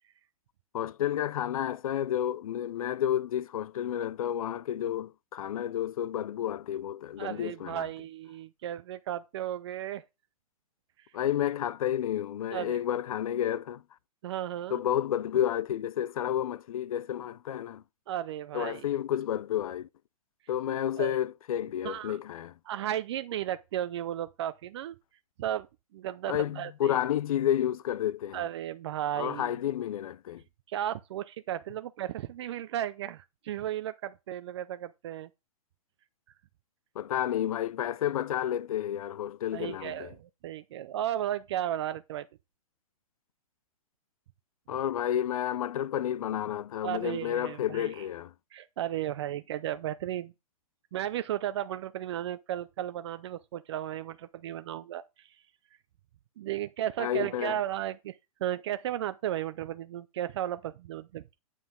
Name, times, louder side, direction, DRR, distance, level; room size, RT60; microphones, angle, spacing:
voice 1, 0.7-7.9 11.1-13.8 14.7-17.8 18.5-19.9 20.5-22.5 26.3-28.4 29.1-30.4 37.0-40.1 44.7-48.3 57.0-57.6, left 11 dB, 75° left, 0.5 m, -31 dB
voice 2, 7.2-10.0 12.5-12.8 14.2-14.8 18.1-18.8 20.7-21.1 21.8-22.2 22.7-24.9 25.4-25.7 25.9-27.0 28.3-29.5 30.7-35.3 39.5-42.3 46.8-47.9 48.5-50.3 50.9-55.3 56.4-58.2 58.4-61.2, right 12 dB, 50° right, 0.5 m, -34 dB
9.1 x 5.7 x 3.7 m
hypercardioid pair, 155°, 18 cm